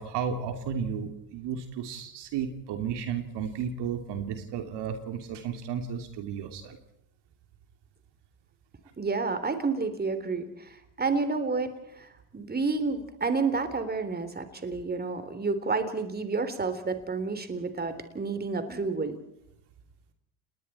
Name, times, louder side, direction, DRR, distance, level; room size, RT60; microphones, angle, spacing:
voice 1, 0.0-6.8, right 7 dB, 65° right, 6 dB, 2.9 m, -33 dB
voice 2, 9.0-19.2, right 4 dB, 20° right, 10 dB, 3.5 m, -30 dB
30.0 x 20.5 x 4.4 m, 0.81 s
supercardioid pair, 80°, 45 cm